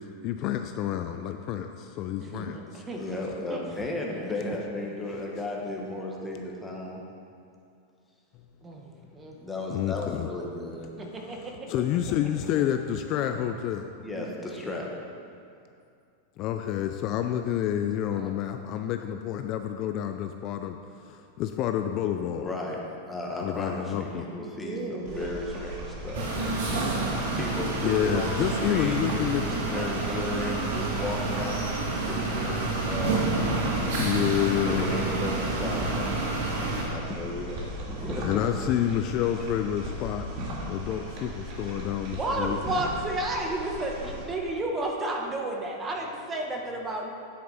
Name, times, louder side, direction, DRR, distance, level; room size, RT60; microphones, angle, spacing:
voice 1, 0.2-2.8 9.7-10.3 11.2-14.0 16.4-22.5 23.4-24.3 27.8-29.4 33.7-34.9 38.2-40.2 40.7-42.6 46.3-46.4, left 10 dB, 40° left, 6 dB, 0.4 m, -29 dB
voice 2, 2.3-3.0 3.5-3.6 8.6-8.8 9.1-9.3 11.3-11.4 24.0-24.1 24.6-25.4 26.3-26.4 26.8-27.4 38.0-38.2 42.2-47.1, right 2 dB, 20° right, 1 dB, 1.1 m, -32 dB
voice 3, 2.9-7.0 9.4-10.9 14.0-14.9 22.4-27.1 27.3-33.9 34.6-38.5, left 2 dB, 5° left, -2 dB, 1.4 m, -35 dB
sound 1, 25.0-44.2, equal, 45° right, 2.1 m, -37 dB
sound 2, 26.1-36.9, right 3 dB, 75° right, 2.2 m, -29 dB
9.5 x 8.4 x 4.1 m, 2.4 s
supercardioid pair, 140°, 0 cm